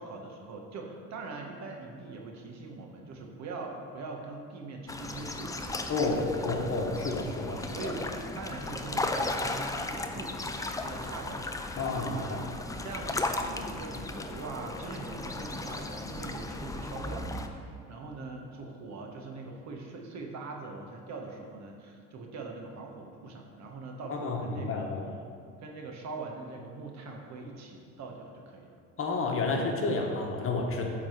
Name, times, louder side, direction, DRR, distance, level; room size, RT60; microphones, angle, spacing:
voice 1, 0.0-6.8 7.5-12.5 12.8-24.9 25.6-28.8, right 3 dB, 55° right, 2 dB, 1.3 m, -42 dB
sound 1, 4.9-17.5, left 2 dB, 10° left, 0.5 m, -36 dB
voice 2, 5.9-7.6 7.8-7.9 11.8-12.4 24.1-25.0 29.0-30.8, left 3 dB, 40° left, 1 dB, 1.3 m, -30 dB
8.8 x 3.9 x 6.4 m, 2.5 s
supercardioid pair, 95°, 33 cm